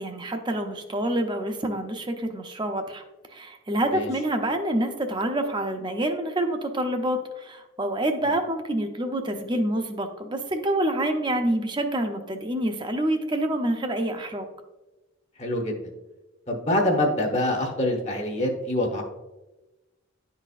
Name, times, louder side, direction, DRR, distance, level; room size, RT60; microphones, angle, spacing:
voice 1, 0.0-3.0 3.3-14.5, right 1 dB, 25° right, 5 dB, 0.6 m, -27 dB
voice 2, 15.4-15.8 16.5-19.0, left 1 dB, 35° left, 1 dB, 0.9 m, -25 dB
10.5 x 4.0 x 2.4 m, 1.1 s
head